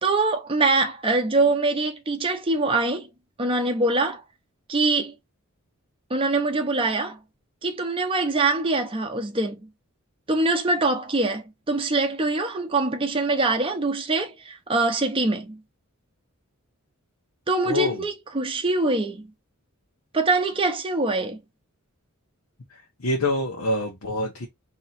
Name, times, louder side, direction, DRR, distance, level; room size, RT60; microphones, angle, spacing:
voice 1, 0.0-3.1 3.4-4.2 4.7-5.1 6.1-7.2 7.6-9.6 10.3-15.6 17.5-19.2 20.1-21.4, right 3 dB, 25° right, 0.6 m, -23 dB
voice 2, 17.6-18.0 22.7-24.5, left 2 dB, 75° left, 0.9 m, -26 dB
3.0 x 2.8 x 4.1 m
head